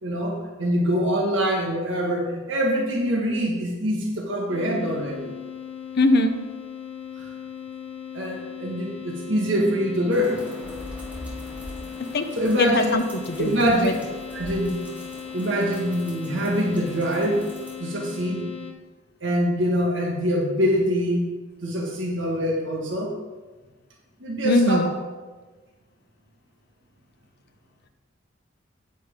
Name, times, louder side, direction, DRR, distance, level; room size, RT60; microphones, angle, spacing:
voice 1, 0.0-5.3 8.1-10.4 12.3-13.0 13.4-14.1 14.3-14.8 15.3-17.5 17.8-18.5 19.2-21.3 21.6-23.1 24.2-24.9, equal, 65° right, -1 dB, 1.7 m, -24 dB
sound 1, 4.5-18.7, left 8 dB, 30° left, 1.1 m, -38 dB
voice 2, 6.0-6.3 12.1-12.3 12.6-13.5 13.8-13.9 24.4-24.9, left 1 dB, 55° left, 7 dB, 0.8 m, -21 dB
sound 2, 10.1-17.7, equal, 5° right, 1.8 m, -42 dB
9.4 x 9.2 x 3.7 m, 1.3 s
head